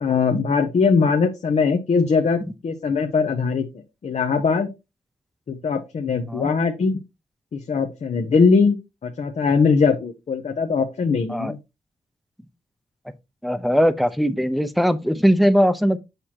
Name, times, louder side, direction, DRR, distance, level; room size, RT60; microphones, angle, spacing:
voice 1, 0.0-4.7 5.5-7.0 7.5-8.8 9.0-11.6, left 5 dB, 60° left, 0.8 m, -21 dB
voice 2, 13.4-16.0, equal, ahead, 0.8 m, -19 dB
6.7 x 5.8 x 2.9 m
cardioid pair, 60°, 13 cm